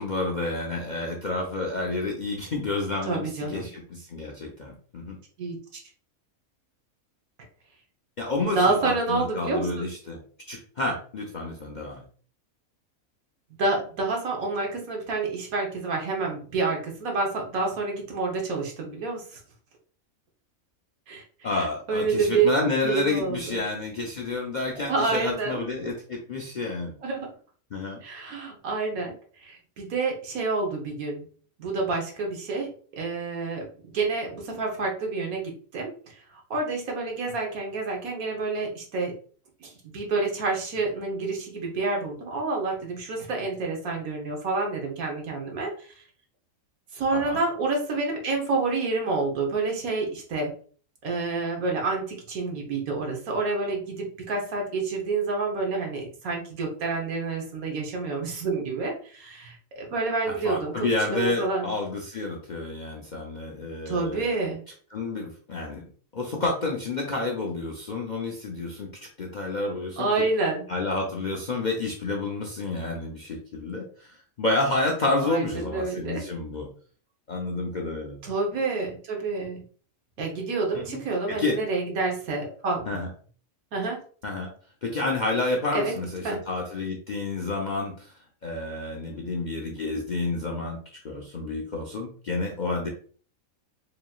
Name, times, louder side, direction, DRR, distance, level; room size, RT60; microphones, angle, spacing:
voice 1, 0.0-5.2 8.2-10.2 10.5-12.0 21.4-26.9 27.7-28.0 47.1-47.4 60.3-64.3 64.9-65.9 66.1-70.1 70.7-76.7 77.3-78.2 80.7-81.0 81.3-81.6 82.9-83.1 84.2-84.5 84.8-88.1 88.4-92.9, left 2 dB, 55° left, -1 dB, 0.5 m, -30 dB
voice 2, 3.1-3.7 5.4-5.6 8.5-9.9 13.6-19.4 21.1-22.5 22.8-23.6 24.7-25.6 27.0-27.3 28.0-31.3 31.6-39.2 39.6-45.9 46.9-50.5 51.0-61.7 63.9-64.6 70.0-70.6 75.2-76.2 78.2-79.6 80.2-83.0 83.7-84.0 85.7-85.9 86.2-86.5, right 3 dB, 80° right, 1 dB, 1.5 m, -28 dB
4.8 x 3.0 x 2.3 m, 0.44 s
omnidirectional pair, 1.5 m